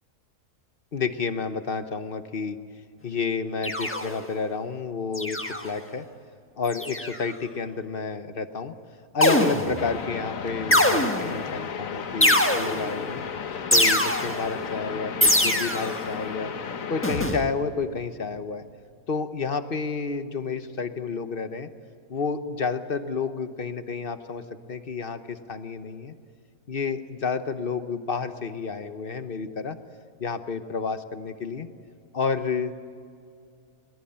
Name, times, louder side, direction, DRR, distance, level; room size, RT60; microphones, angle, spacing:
voice 1, 0.9-2.6 3.0-6.0 6.6-8.7 9.1-13.2 13.7-16.5 16.9-18.6 19.1-21.7 22.1-24.4 24.7-26.1 26.7-29.8 30.2-31.7 32.1-32.7, left 5 dB, 40° left, 10 dB, 1.0 m, -30 dB
sound 1, 3.6-4.3 5.1-5.8 6.7-7.2 9.2-9.9 10.7-11.4 12.2-13.0 13.7-14.5 15.2-16.0 17.0-17.5, left 1 dB, 10° left, 1.3 m, -23 dB
sound 2, 9.8-17.2, left 6 dB, 60° left, 1.5 m, -34 dB
21.5 x 20.0 x 8.7 m, 2.3 s
omnidirectional pair, 1.6 m